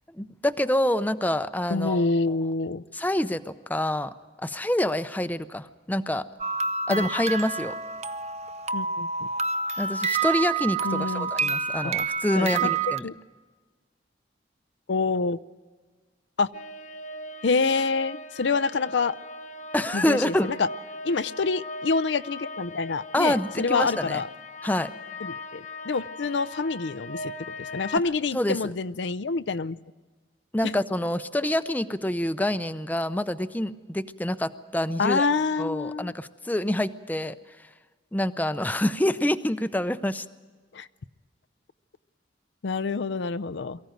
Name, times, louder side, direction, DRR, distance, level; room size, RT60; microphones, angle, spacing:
voice 1, 0.2-2.1 2.9-4.1 4.4-6.3 6.9-7.7 9.8-13.1 19.7-20.5 23.1-24.2 24.6-24.9 28.3-28.7 30.5-35.3 35.6-37.3 38.1-40.3, left 1 dB, 10° left, 11 dB, 0.6 m, -26 dB
voice 2, 1.7-2.8 6.9-7.1 8.7-9.3 10.8-11.3 11.8-11.9 12.3-12.7 13.0-13.1 14.9-15.4 16.4-16.5 17.4-19.1 19.9-20.7 21.0-24.3 25.2-27.3 27.6-29.8 35.0-36.1 40.7-40.9 42.6-43.8, left 4 dB, 80° left, 14 dB, 0.6 m, -27 dB
sound 1, 6.4-13.0, right 4 dB, 35° right, 0.6 m, -28 dB
sound 2, 16.5-28.0, left 2 dB, 40° left, 0.9 m, -40 dB
23.5 x 15.0 x 9.1 m, 1.4 s
head